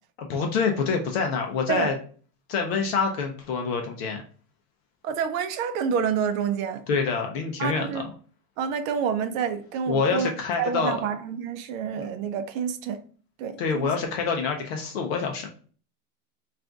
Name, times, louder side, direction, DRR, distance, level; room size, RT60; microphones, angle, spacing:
voice 1, 0.2-1.9 2.5-4.2 6.9-8.1 9.9-11.0 11.9-12.1 13.6-15.5, left 5 dB, 45° left, 0.4 m, -26 dB
voice 2, 5.0-6.8 7.6-8.0 8.6-10.3 10.6-13.0 13.4-13.9, right 7 dB, 60° right, 0.6 m, -28 dB
3.4 x 2.4 x 3.7 m
supercardioid pair, 170°, 47 cm